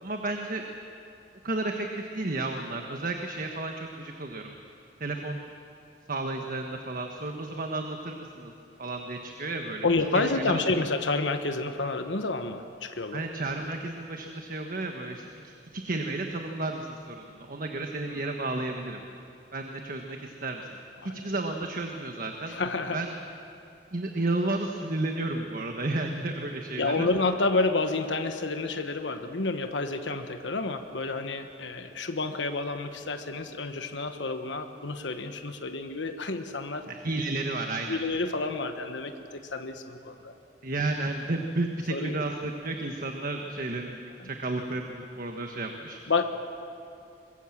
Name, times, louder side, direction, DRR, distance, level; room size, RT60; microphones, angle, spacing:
voice 1, 0.0-0.6 1.4-4.5 5.0-5.5 6.1-8.5 8.8-9.9 10.1-10.7 13.1-19.0 19.5-20.7 21.0-22.6 22.9-23.1 23.9-27.1 36.9-38.0 40.6-46.0, right 2 dB, 50° right, 3 dB, 1.4 m, -32 dB
voice 2, 9.8-13.2 18.2-18.3 21.0-21.3 22.5-23.0 26.8-36.9 37.8-40.4 41.9-42.2 44.2-44.3 46.1-46.2, left 3 dB, 90° left, 7 dB, 1.2 m, -29 dB
23.5 x 22.0 x 7.4 m, 2.7 s
head